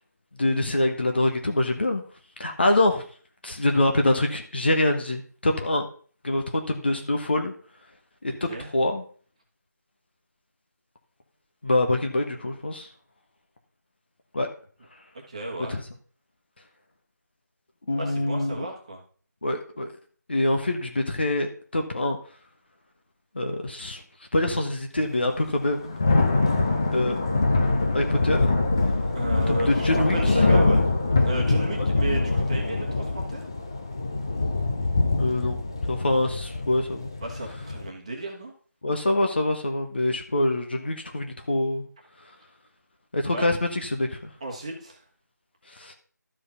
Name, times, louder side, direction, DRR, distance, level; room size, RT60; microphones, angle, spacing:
voice 1, 0.4-2.0 2.4-3.0 3.4-5.9 6.2-7.5 8.2-9.0 11.6-12.9 14.3-14.5 15.7-15.8 17.9-18.7 19.4-19.9 20.3-22.2 23.3-24.0 24.3-26.0 26.9-27.2 27.9-28.4 29.7-30.3 35.2-35.6 35.9-37.1 38.8-41.8 43.1-44.2 45.8-45.9, left 1 dB, 35° left, 4 dB, 1.2 m, -25 dB
voice 2, 15.3-15.8 17.9-19.0 29.1-30.8 31.2-33.4 37.2-38.5 43.3-43.5 44.4-45.0, right 2 dB, 20° right, 1 dB, 1.5 m, -33 dB
Thunder / Rain, 25.5-37.9, left 3 dB, 15° left, 0.6 m, -24 dB
12.5 x 5.0 x 5.6 m, 0.44 s
figure-of-eight pair, 165°, 10 cm